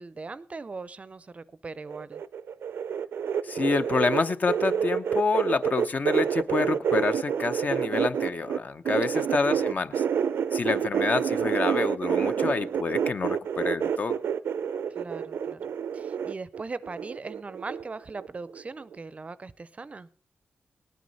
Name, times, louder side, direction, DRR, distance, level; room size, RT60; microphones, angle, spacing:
voice 1, 0.0-2.2 9.1-9.4 10.7-10.9 14.9-15.7 15.9-20.1, right 4 dB, 35° right, 0.5 m, -40 dB
sound 1, 1.9-8.6 8.8-17.9 18.1-18.6 18.9-19.0, right 7 dB, 90° right, 0.5 m, -28 dB
voice 2, 3.4-10.0 10.5-14.2, left 4 dB, 45° left, 0.7 m, -28 dB
18.5 x 9.5 x 4.0 m
wide cardioid pair, 105°, 4 cm